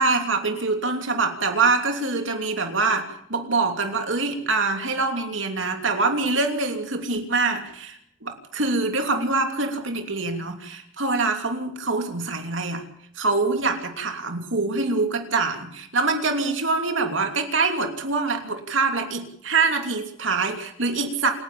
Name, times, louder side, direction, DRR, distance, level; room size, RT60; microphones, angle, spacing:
voice 1, 0.0-12.8 13.2-21.3, right 3 dB, 70° right, 4 dB, 3.0 m, -24 dB
28.0 x 11.0 x 8.7 m, 0.67 s
head